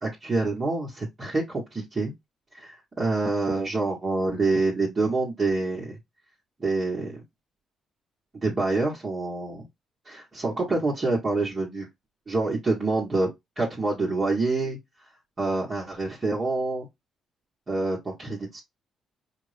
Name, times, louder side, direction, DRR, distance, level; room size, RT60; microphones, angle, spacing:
voice 1, 0.0-2.1 2.5-6.0 6.6-7.2 8.3-9.6 10.0-11.9 12.3-13.3 13.5-14.8 15.4-16.9 17.7-18.6, right 3 dB, 30° right, 1.7 m, -26 dB
5.2 x 2.6 x 3.4 m
cardioid pair, 90°, 0 cm